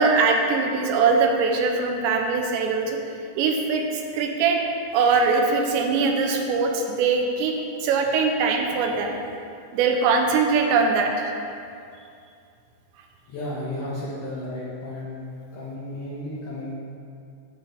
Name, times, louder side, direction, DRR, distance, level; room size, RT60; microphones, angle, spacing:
voice 1, 0.0-3.0 3.4-4.6 4.9-7.5 7.8-9.2 9.7-11.3, right 4 dB, 90° right, 2 dB, 3.0 m, -22 dB
voice 2, 13.3-15.2 15.5-16.7, left 1 dB, 75° left, -7 dB, 1.8 m, -33 dB
9.9 x 7.8 x 3.3 m, 2.5 s
omnidirectional pair, 5.2 m